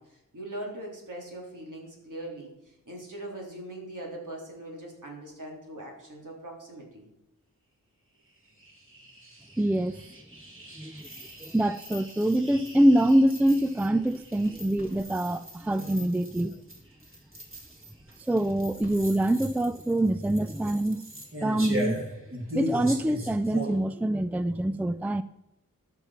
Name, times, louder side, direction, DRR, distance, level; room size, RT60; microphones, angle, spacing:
voice 1, 0.0-7.1, right 1 dB, 65° right, 3.6 m, -41 dB
sound 1, 8.4-23.8, equal, 40° right, 2.9 m, -39 dB
voice 2, 9.6-10.0 10.8-11.1 11.4-16.5 18.3-21.0 21.4-22.0 22.5-25.2, right 1 dB, 5° right, 0.3 m, -25 dB
13.5 x 5.9 x 5.8 m
cardioid pair, 50°, 34 cm